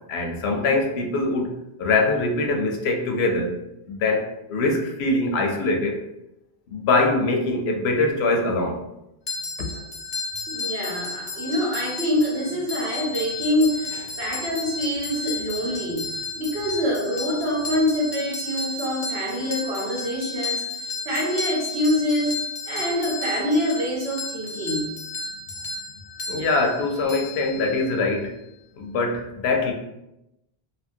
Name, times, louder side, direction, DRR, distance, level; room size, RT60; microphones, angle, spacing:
voice 1, 0.1-3.5 3.9-6.0 6.7-8.8 9.6-9.7 26.3-28.3 28.8-29.7, left 2 dB, 85° left, 2 dB, 0.8 m, -23 dB
sound 1, 9.3-28.0, left 3 dB, 50° left, 0.5 m, -33 dB
voice 2, 10.5-20.7 21.0-22.3 22.7-24.9, equal, 90° right, -3 dB, 1.2 m, -25 dB
2.7 x 2.4 x 2.6 m, 0.88 s
omnidirectional pair, 1.0 m